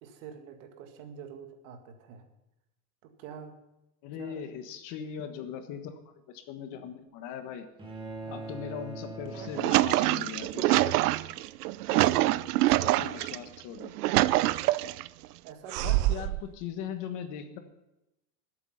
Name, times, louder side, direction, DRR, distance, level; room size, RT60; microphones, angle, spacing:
voice 1, 0.0-2.3 3.0-3.6 4.1-4.4 8.3-8.5 11.8-12.5 15.4-16.0, right 7 dB, 55° right, 5 dB, 2.1 m, -46 dB
voice 2, 4.0-6.0 6.3-7.7 8.3-11.3 11.9-12.3 12.7-13.9 15.8-17.6, left 8 dB, 40° left, 7 dB, 1.4 m, -40 dB
sound 1, 7.8-10.3, right 2 dB, 10° right, 1.8 m, -42 dB
sound 2, 9.3-13.4 13.8-15.1 15.7-16.4, right 17 dB, 90° right, 0.6 m, -25 dB
20.0 x 8.4 x 5.6 m, 0.92 s
supercardioid pair, 165°, 45 cm